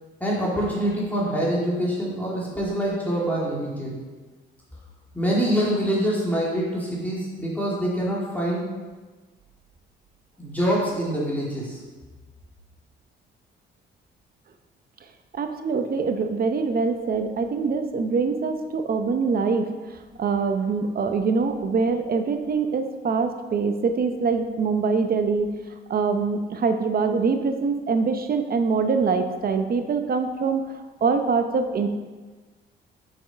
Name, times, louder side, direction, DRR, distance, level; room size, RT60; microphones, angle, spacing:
voice 1, 0.2-3.9 5.1-8.7 10.4-11.8, equal, 10° left, -6 dB, 2.6 m, -25 dB
voice 2, 15.3-25.5 25.9-30.6 31.0-31.9, right 4 dB, 50° right, 6 dB, 0.9 m, -24 dB
6.5 x 6.2 x 5.2 m, 1.3 s
cardioid pair, 90°, 20 cm